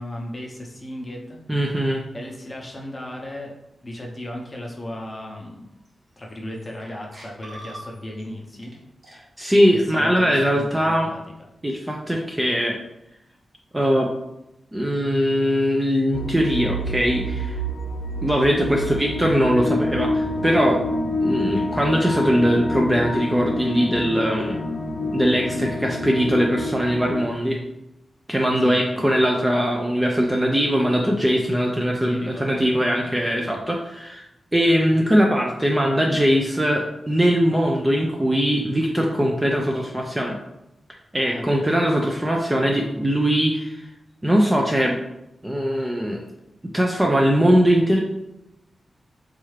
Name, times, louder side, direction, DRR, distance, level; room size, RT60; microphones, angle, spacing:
voice 1, 0.0-1.4 2.1-3.5 3.8-5.7 6.2-8.7 9.7-11.2 18.7-18.9 28.6-29.1 32.1-33.1 41.2-41.5, left 1 dB, 20° left, 0 dB, 0.6 m, -36 dB
voice 2, 1.5-2.0 9.1-11.1 11.6-12.8 13.7-14.1 14.7-17.6 18.2-20.8 21.2-24.6 25.1-27.6 28.3-34.2 34.5-40.4 41.1-43.8 44.2-45.0 45.4-46.2 46.6-48.0, equal, 10° right, 0 dB, 0.3 m, -21 dB
sound 1, 5.8-5.9 6.3-6.8 7.1-8.2 8.6-8.8 9.0-10.4, right 1 dB, 35° right, 1.0 m, -44 dB
sound 2, 16.1-27.3, left 1 dB, 60° left, 0.5 m, -27 dB
4.2 x 2.4 x 3.1 m, 0.86 s
wide cardioid pair, 155°, 0 cm